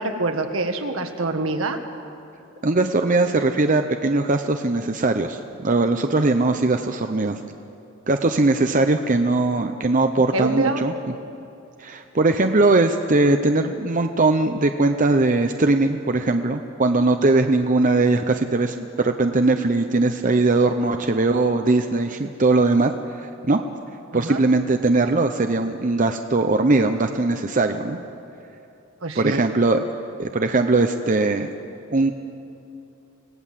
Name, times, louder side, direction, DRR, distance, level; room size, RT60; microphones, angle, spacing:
voice 1, 0.0-1.8 10.3-10.8 24.1-24.4 29.0-29.4, right 2 dB, 75° right, 5 dB, 1.7 m, -25 dB
voice 2, 2.6-7.4 8.1-10.9 11.8-22.9 23.2-23.6 24.1-28.0 29.1-29.8 30.2-31.5 31.9-32.1, right 2 dB, 40° right, 6 dB, 0.7 m, -20 dB
26.0 x 18.0 x 7.5 m, 2.7 s
head